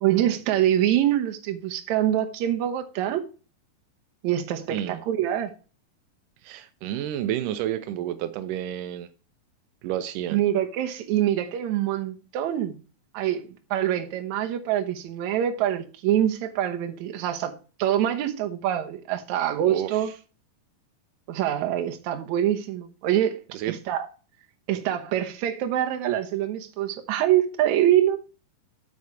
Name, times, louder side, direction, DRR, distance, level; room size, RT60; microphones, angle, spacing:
voice 1, 0.0-3.2 4.2-5.5 10.3-12.8 13.1-13.4 13.7-20.1 21.3-24.1 24.7-28.2, right 11 dB, 70° right, 1.9 m, -25 dB
voice 2, 4.7-5.0 6.4-9.1 9.8-10.4 19.6-20.1 23.5-23.8, right 11 dB, 85° right, 1.8 m, -30 dB
8.5 x 6.5 x 4.8 m
omnidirectional pair, 4.4 m